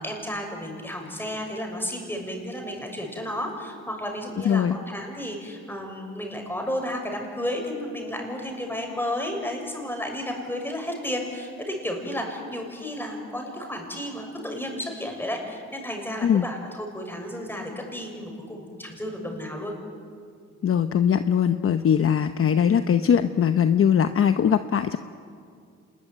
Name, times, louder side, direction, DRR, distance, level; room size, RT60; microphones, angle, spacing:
voice 1, 0.0-19.7, left 1 dB, 5° left, 2 dB, 6.8 m, -32 dB
voice 2, 4.4-4.8 16.2-16.4 20.6-25.0, left 8 dB, 45° left, 9 dB, 0.9 m, -21 dB
27.0 x 21.5 x 9.4 m, 2.2 s
cardioid pair, 90°, 30 cm